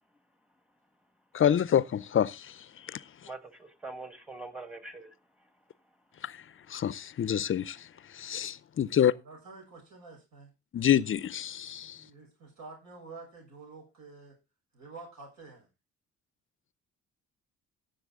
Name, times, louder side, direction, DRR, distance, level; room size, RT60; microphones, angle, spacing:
voice 1, 1.3-2.5 2.9-3.0 6.2-6.3 6.7-7.8 8.1-9.1 10.7-12.0, left 9 dB, 45° left, 0.6 m, -27 dB
voice 2, 3.2-5.1 5.4-5.5, right 2 dB, 5° right, 1.5 m, -43 dB
voice 3, 8.9-10.5 12.0-14.4 14.7-15.7, right 3 dB, 65° right, 7.1 m, -49 dB
16.0 x 7.1 x 3.7 m
cardioid pair, 90°, 30 cm